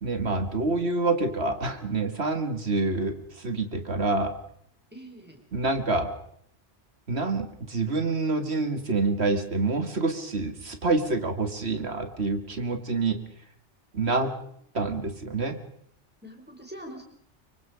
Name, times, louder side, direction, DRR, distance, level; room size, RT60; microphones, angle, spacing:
voice 1, 0.0-4.3 5.5-6.1 7.1-13.2 13.9-14.3 14.7-15.6, right 3 dB, 65° right, 8 dB, 2.3 m, -27 dB
voice 2, 4.9-5.4 14.1-14.4 16.2-17.0, equal, 10° right, 1 dB, 4.9 m, -44 dB
25.0 x 23.5 x 5.1 m, 0.68 s
omnidirectional pair, 1.2 m